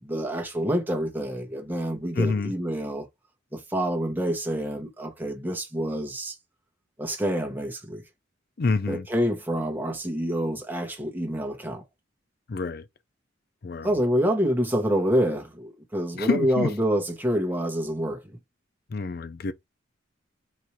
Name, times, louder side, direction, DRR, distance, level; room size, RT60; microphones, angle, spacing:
voice 1, 0.0-3.1 3.5-6.4 7.0-8.0 8.9-11.8 13.8-18.4, equal, 10° right, 1.0 m, -27 dB
voice 2, 2.2-2.5 8.6-9.1 12.5-12.9 13.6-13.9 16.1-16.7 18.9-19.5, left 4 dB, 50° left, 0.5 m, -27 dB
4.2 x 2.6 x 4.5 m
head